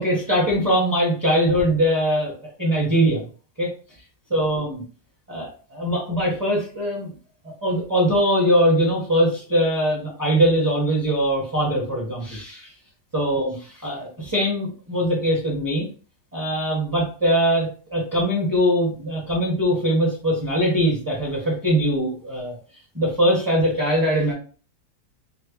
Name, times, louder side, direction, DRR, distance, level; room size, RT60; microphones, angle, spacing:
voice 1, 0.0-2.3 2.6-3.2 3.6-3.7 4.3-4.8 5.3-7.1 7.4-12.7 13.1-15.9 16.3-22.6 22.9-24.3, equal, 15° right, -4 dB, 0.9 m, -21 dB
4.0 x 2.1 x 3.1 m, 0.38 s
omnidirectional pair, 1.9 m